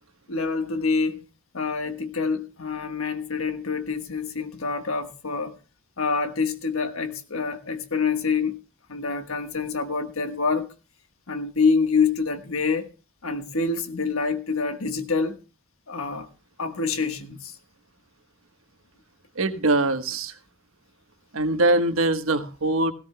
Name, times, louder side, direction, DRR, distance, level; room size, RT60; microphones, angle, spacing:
voice 1, 0.3-1.2 1.5-5.6 6.0-8.6 8.9-10.7 11.3-12.9 13.2-15.4 15.9-16.3 16.6-17.6, left 4 dB, 85° left, 1.4 m, -26 dB
voice 2, 19.3-20.4 21.3-22.9, right 2 dB, 80° right, 1.3 m, -22 dB
17.5 x 17.0 x 2.2 m
head